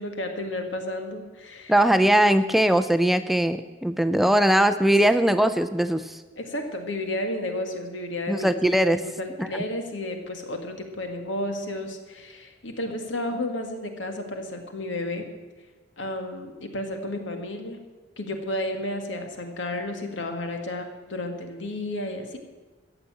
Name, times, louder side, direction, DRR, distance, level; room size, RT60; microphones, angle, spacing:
voice 1, 0.0-1.7 4.9-5.0 6.4-8.6 9.0-15.3 16.0-17.8 18.2-22.4, left 1 dB, 80° left, 5 dB, 1.8 m, -32 dB
voice 2, 1.7-6.2 8.3-9.0 9.4-9.5, right 1 dB, ahead, 11 dB, 0.4 m, -20 dB
15.0 x 6.9 x 8.8 m, 1.3 s
head